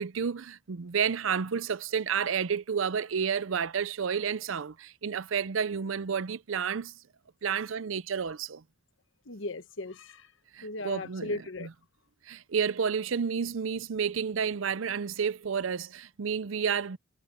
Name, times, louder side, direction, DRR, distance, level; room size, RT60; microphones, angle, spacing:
voice 1, 0.0-6.9 7.4-8.6 10.5-11.3 11.6-11.7 12.3-17.0, right 6 dB, 80° right, 0.6 m, -30 dB
voice 2, 9.3-10.3 10.6-11.7, left 2 dB, 75° left, 1.2 m, -37 dB
head